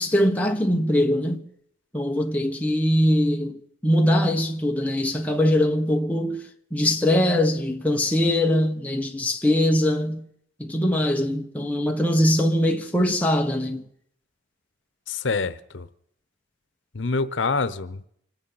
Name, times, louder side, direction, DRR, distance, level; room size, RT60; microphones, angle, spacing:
voice 1, 0.0-1.5 1.9-6.4 6.7-10.2 10.6-13.8, left 1 dB, 10° left, 1.2 m, -22 dB
voice 2, 15.1-15.9 16.9-18.0, left 4 dB, 85° left, 0.9 m, -26 dB
25.5 x 9.3 x 5.6 m
head